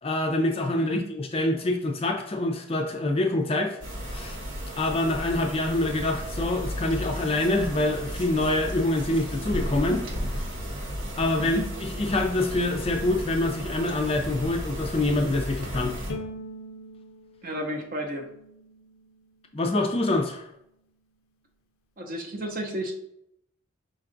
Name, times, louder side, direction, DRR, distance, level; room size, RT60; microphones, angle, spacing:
voice 1, 0.0-3.8 4.1-4.4 4.8-10.5 11.2-11.6 12.0-16.0 19.5-20.5, left 2 dB, 30° left, 2 dB, 0.4 m, -26 dB
sound 1, 3.8-16.1, equal, 70° right, 1.1 m, -34 dB
Bowed string instrument, 16.1-19.3, left 1 dB, 80° left, 0.5 m, -42 dB
voice 2, 17.4-18.3 22.0-22.9, right 1 dB, 40° right, 3 dB, 0.7 m, -32 dB
5.1 x 2.3 x 3.8 m, 0.77 s
head